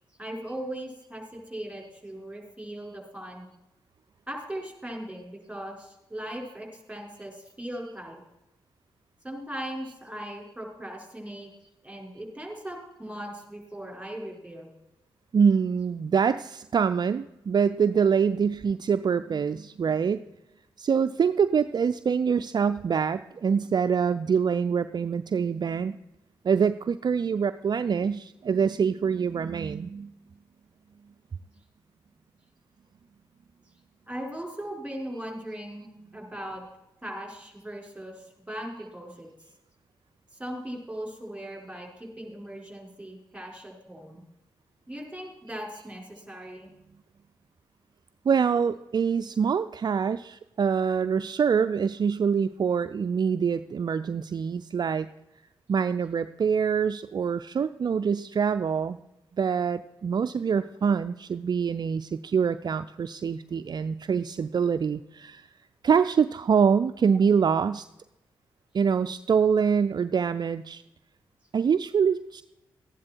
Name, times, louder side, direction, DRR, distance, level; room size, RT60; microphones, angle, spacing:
voice 1, 0.2-3.5 4.3-8.2 9.2-11.5 11.8-14.7 34.1-35.9 36.1-36.7 37.0-39.3 40.4-44.2 44.9-46.7, right 1 dB, 10° right, 0 dB, 5.4 m, -38 dB
voice 2, 15.3-20.2 20.8-26.0 26.4-30.1 48.3-55.1 55.7-59.0 59.4-65.5 65.8-67.9 68.7-70.8 71.5-72.4, right 6 dB, 50° right, 11 dB, 0.4 m, -25 dB
13.5 x 11.0 x 4.6 m, 0.92 s
supercardioid pair, 40°, 10 cm